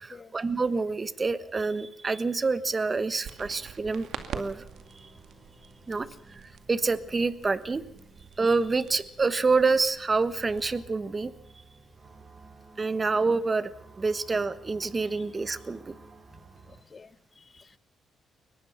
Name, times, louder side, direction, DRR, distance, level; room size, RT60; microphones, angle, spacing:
voice 1, 0.0-4.1 4.3-4.6 4.9-5.1 5.9-7.8 8.4-11.3 12.8-13.7 14.0-15.9, right 4 dB, 30° right, 14 dB, 1.3 m, -27 dB
sound 1, 2.8-16.8, right 3 dB, 45° right, 4.2 m, -54 dB
sound 2, 3.2-10.8, right 7 dB, 70° right, 2.2 m, -46 dB
voice 2, 16.3-17.8, left 5 dB, 35° left, 16 dB, 1.0 m, -52 dB
23.0 x 19.5 x 5.8 m, 0.81 s
cardioid pair, 90°, 0 cm